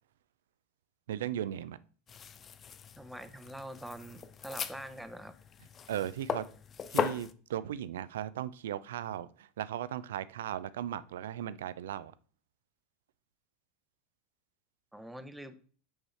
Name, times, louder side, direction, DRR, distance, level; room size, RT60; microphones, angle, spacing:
voice 1, 1.1-1.8 5.9-6.5 6.9-12.1, right 11 dB, 75° right, 0.3 m, -37 dB
sound 1, 2.1-7.3, left 7 dB, 30° left, 0.4 m, -38 dB
voice 2, 3.0-5.3 14.9-15.5, right 1 dB, 5° right, 0.7 m, -44 dB
6.3 x 4.8 x 3.2 m
hypercardioid pair, 85°, 0 cm